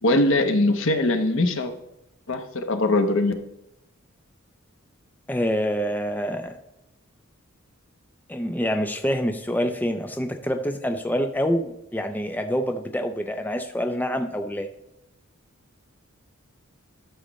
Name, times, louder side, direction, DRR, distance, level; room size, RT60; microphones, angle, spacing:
voice 1, 0.0-1.7 2.3-3.3, left 2 dB, 65° left, 7 dB, 1.0 m, -21 dB
voice 2, 5.3-6.5 8.3-14.7, equal, 10° left, 6 dB, 0.5 m, -26 dB
12.5 x 6.5 x 3.1 m, 0.85 s
head